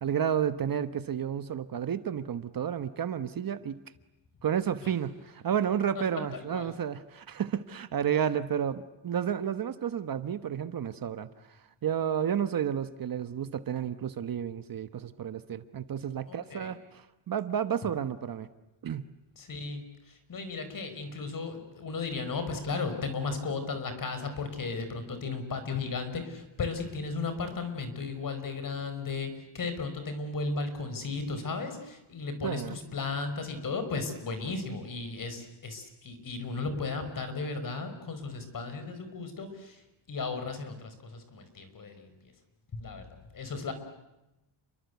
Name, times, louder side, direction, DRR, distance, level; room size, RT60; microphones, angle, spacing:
voice 1, 0.0-3.8 4.4-11.3 11.8-18.5 18.8-19.1 32.4-32.7, right 8 dB, 45° right, 11 dB, 1.2 m, -31 dB
voice 2, 6.3-6.7 16.3-16.7 19.4-39.8 40.1-42.1 42.8-43.1 43.3-43.7, left 4 dB, 45° left, 9 dB, 5.2 m, -35 dB
30.0 x 23.0 x 8.3 m, 0.95 s
cardioid pair, 145°, 46 cm